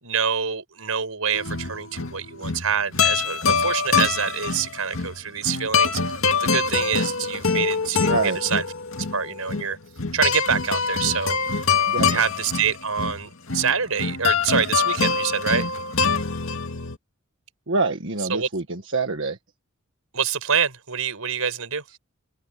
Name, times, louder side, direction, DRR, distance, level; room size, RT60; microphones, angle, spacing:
voice 1, 0.0-8.6 9.1-9.8 10.1-11.6 12.0-15.6 18.3-18.5 20.1-21.8, right 7 dB, 85° right, 5.2 m, -26 dB
sound 1, 1.3-17.0, left 5 dB, 70° left, 2.4 m, -24 dB
voice 2, 8.0-8.4 11.9-12.2 17.7-19.4, right 3 dB, 60° right, 1.6 m, -25 dB
head